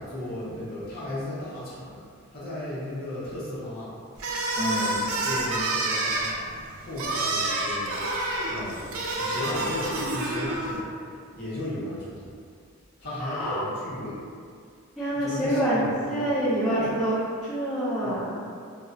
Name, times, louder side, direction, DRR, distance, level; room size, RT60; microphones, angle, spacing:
voice 1, 0.0-2.0 2.3-12.3 13.0-14.2 15.1-16.3 16.7-16.9 18.0-18.2, left 1 dB, 45° left, -9 dB, 0.7 m, -36 dB
sound 1, 4.2-10.8, right 2 dB, 65° right, 0.3 m, -28 dB
voice 2, 13.2-13.6 15.0-17.1 17.4-18.4, right 1 dB, ahead, -14 dB, 0.6 m, -26 dB
2.9 x 2.0 x 2.4 m, 2.3 s
head